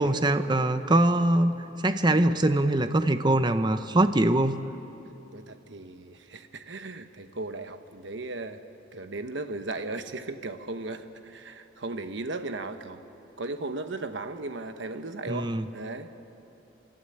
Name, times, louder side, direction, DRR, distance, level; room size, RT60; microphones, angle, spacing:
voice 1, 0.0-1.5 1.8-4.6 15.3-15.7, right 1 dB, 25° right, 10 dB, 0.8 m, -23 dB
voice 2, 5.3-8.6 8.9-13.0 13.4-16.1, right 2 dB, 70° right, 8 dB, 1.1 m, -36 dB
25.5 x 13.0 x 9.9 m, 3.0 s
head